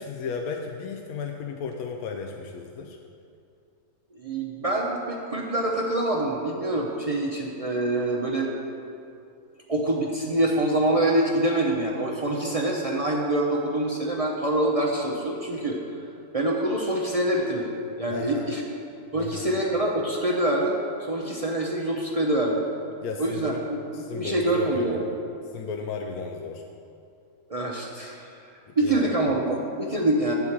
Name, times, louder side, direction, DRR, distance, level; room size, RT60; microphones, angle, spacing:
voice 1, 0.0-3.0 18.1-18.4 19.2-19.5 23.0-23.6 23.9-25.0 25.5-26.6 28.8-29.1, left 5 dB, 80° left, 2 dB, 1.1 m, -34 dB
voice 2, 4.1-8.5 9.7-15.8 16.3-17.7 18.0-18.6 19.1-22.7 23.2-23.5 23.9-25.0 27.5-28.5 28.8-30.3, right 1 dB, 45° right, -2 dB, 0.5 m, -25 dB
8.0 x 4.7 x 7.2 m, 2.5 s
omnidirectional pair, 1.6 m